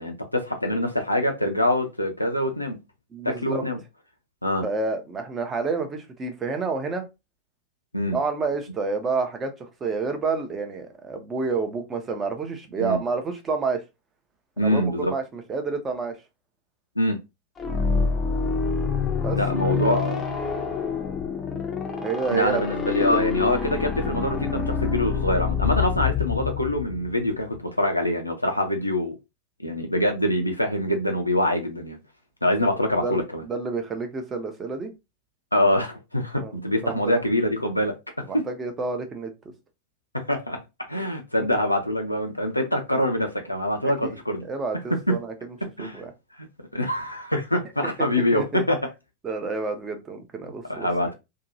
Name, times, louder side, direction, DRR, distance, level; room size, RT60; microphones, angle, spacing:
voice 1, 0.0-2.8 3.2-3.8 4.4-4.6 7.9-8.2 12.8-13.0 14.6-15.1 17.0-17.2 19.3-20.2 22.3-29.2 29.6-32.0 32.4-33.4 35.5-37.9 38.3-38.4 40.1-40.6 40.9-44.4 45.1-45.2 45.8-46.0 46.4-46.5 46.7-48.8 50.7-51.1, left 1 dB, 85° left, 0.4 m, -24 dB
voice 2, 3.1-3.6 4.6-7.0 8.1-13.8 14.6-16.2 19.2-19.4 19.6-20.0 22.0-22.7 23.0-23.3 33.0-34.9 36.4-36.6 36.8-37.1 38.2-39.3 44.0-44.2 44.4-45.3 45.8-46.1 48.0-48.1 48.3-48.6 49.2-51.1, right 4 dB, 20° right, 0.7 m, -29 dB
sound 1, 17.6-27.3, left 6 dB, 20° left, 0.5 m, -26 dB
2.7 x 2.3 x 2.6 m
figure-of-eight pair, 90°, 0 cm